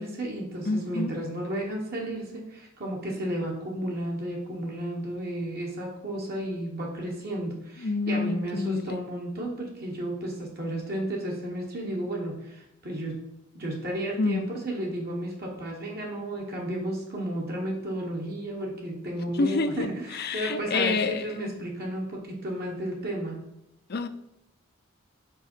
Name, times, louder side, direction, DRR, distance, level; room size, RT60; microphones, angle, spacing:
voice 1, 0.0-13.2 13.5-23.4, right 1 dB, 50° right, -1 dB, 1.2 m, -33 dB
voice 2, 0.7-1.2 7.8-9.0 14.2-14.5 19.4-21.5 23.9-24.1, left 3 dB, 50° left, 11 dB, 0.5 m, -28 dB
5.3 x 4.8 x 4.5 m, 0.83 s
head